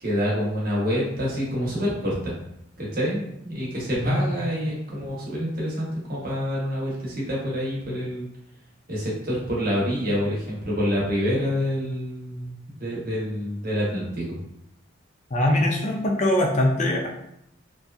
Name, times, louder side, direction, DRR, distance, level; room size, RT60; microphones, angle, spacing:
voice 1, 0.0-2.3 2.8-8.3 8.9-14.4, equal, 45° right, -5 dB, 0.8 m, -27 dB
voice 2, 15.3-17.1, left 1 dB, 35° left, 0 dB, 0.4 m, -22 dB
2.6 x 2.3 x 2.2 m, 0.79 s
head